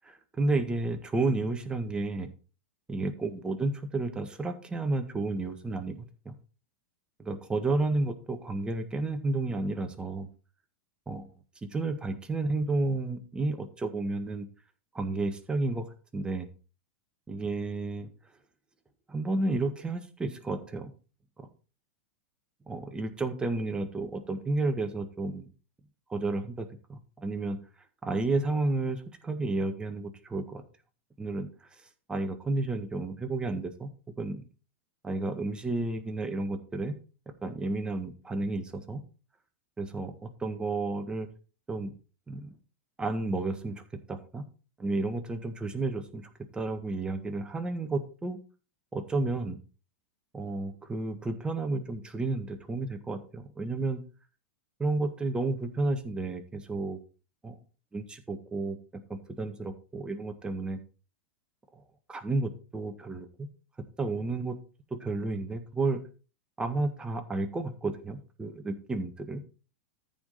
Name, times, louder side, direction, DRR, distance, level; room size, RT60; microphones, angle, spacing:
voice 1, 0.4-2.3 2.9-6.4 7.2-10.3 11.1-11.3 11.6-14.5 14.9-15.9 16.1-16.5 17.3-18.1 19.1-20.9 21.4-21.5 22.7-25.5 26.1-27.6 28.0-30.6 31.2-31.5 32.1-33.9 34.2-34.4 35.0-36.9 37.4-39.0 39.8-41.3 41.7-41.9 42.3-42.6 43.0-43.8 44.1-44.4 44.8-48.4 48.9-49.6 50.3-54.0 54.8-57.0 57.4-57.5 57.9-58.8 59.1-60.8 61.7-61.8 62.1-63.5 64.0-64.6 64.9-66.0 66.6-69.4, right 2 dB, 15° right, 6 dB, 1.7 m, -31 dB
13.5 x 5.2 x 4.3 m, 0.36 s
hypercardioid pair, 100°, 7 cm